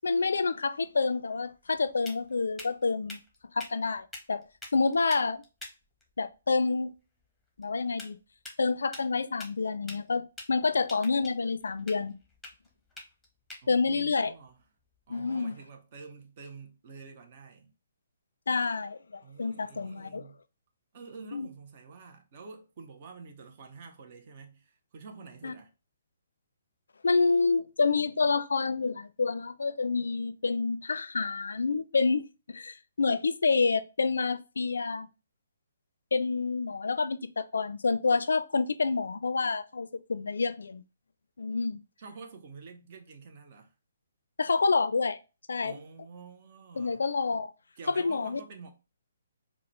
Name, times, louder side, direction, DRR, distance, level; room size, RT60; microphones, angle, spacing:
voice 1, 0.0-3.2 3.5-4.4 4.7-5.4 6.2-6.9 7.6-8.2 8.6-12.2 13.7-14.3 15.1-15.6 18.5-20.2 21.3-21.5 25.4-25.5 27.0-35.1 36.1-40.8 41.4-41.8 44.4-45.2 45.5-45.7 46.8-47.5 47.9-48.4, left 4 dB, 75° left, 0.4 m, -28 dB
sound 1, 0.8-15.5, left 2 dB, ahead, 1.1 m, -50 dB
voice 2, 13.6-14.6 15.1-17.7 19.2-20.4 20.9-25.7 42.0-43.7 45.6-47.0 47.8-48.7, right 4 dB, 45° right, 0.8 m, -48 dB
4.7 x 2.3 x 3.1 m
figure-of-eight pair, 140°, 0 cm